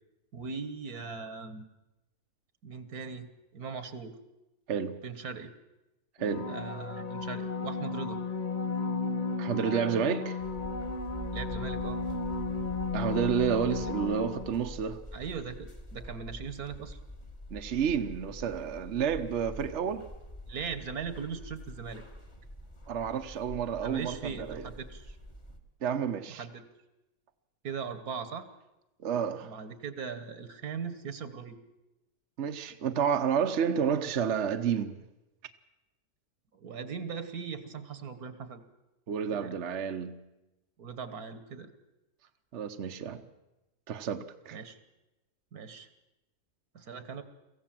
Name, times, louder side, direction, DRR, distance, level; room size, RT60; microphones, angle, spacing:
voice 1, 0.3-1.7 2.6-4.2 5.0-5.5 6.5-8.2 11.3-12.0 13.7-13.8 15.1-17.0 20.5-22.0 23.8-25.1 26.3-26.6 27.6-28.5 29.4-31.6 36.5-38.6 39.3-39.6 40.8-41.7 44.5-44.8 45.5-45.9 46.7-47.2, right 6 dB, 80° right, 1.9 m, -39 dB
voice 2, 4.7-5.0 6.2-6.5 9.4-10.4 12.9-15.0 17.5-20.1 22.9-24.7 25.8-26.5 29.0-29.5 32.4-35.0 39.1-40.2 42.5-43.2 43.9-44.6, right 7 dB, 55° right, 1.1 m, -30 dB
sound 1, 6.2-14.8 20.2-20.3, left 4 dB, 35° left, 1.1 m, -34 dB
sound 2, 10.4-25.6, equal, 20° left, 1.7 m, -45 dB
24.0 x 15.5 x 7.6 m
omnidirectional pair, 1.6 m